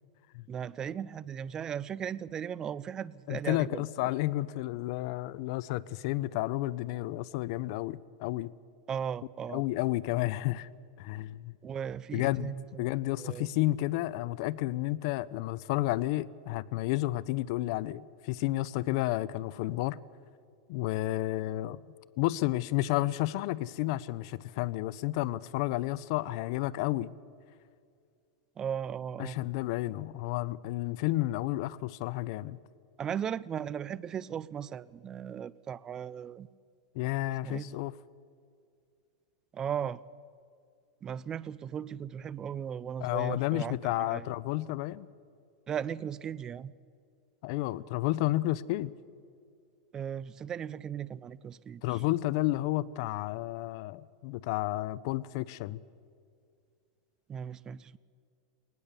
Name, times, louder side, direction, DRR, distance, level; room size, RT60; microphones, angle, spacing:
voice 1, 0.5-3.8 8.9-9.6 11.6-12.7 13.2-13.5 28.6-29.4 33.0-36.5 37.4-37.8 39.5-40.0 41.0-44.3 45.7-46.7 49.9-52.0 57.3-58.0, right 8 dB, 20° right, 20 dB, 0.4 m, -37 dB
voice 2, 3.3-8.5 9.5-10.7 11.0-11.6 12.1-12.5 12.8-20.0 20.7-21.8 22.2-27.1 29.2-32.6 36.9-37.9 43.0-45.1 47.4-48.9 51.8-55.8, left 17 dB, 50° left, 18 dB, 0.6 m, -31 dB
20.0 x 19.0 x 6.9 m, 2.3 s
supercardioid pair, 150°, 3 cm